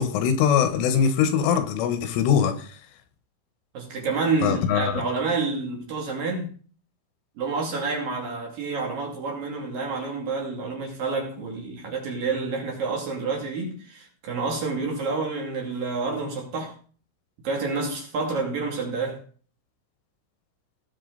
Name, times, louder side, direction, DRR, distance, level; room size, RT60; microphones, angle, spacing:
voice 1, 0.0-2.7 4.4-5.0, left 7 dB, 80° left, 3.6 m, -22 dB
voice 2, 3.7-6.5 7.4-16.8 17.4-19.2, right 4 dB, 50° right, 3.7 m, -28 dB
18.5 x 7.4 x 3.9 m
omnidirectional pair, 5.8 m